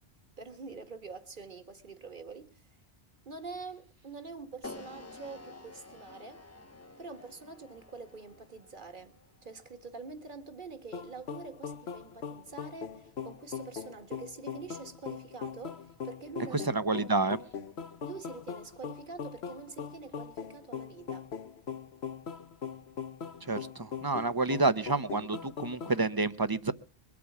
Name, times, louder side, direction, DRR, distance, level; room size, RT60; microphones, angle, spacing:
voice 1, 0.4-2.7 3.3-6.4 7.0-9.2 9.4-16.6 18.0-21.3, right 4 dB, 45° right, 1.9 m, -45 dB
sound 1, 4.6-10.8, left 2 dB, 15° left, 0.7 m, -50 dB
sound 2, 10.9-26.0, left 7 dB, 70° left, 1.2 m, -41 dB
voice 2, 16.7-17.4 23.5-26.7, right 3 dB, 25° right, 0.7 m, -29 dB
22.5 x 8.5 x 7.2 m
omnidirectional pair, 1.1 m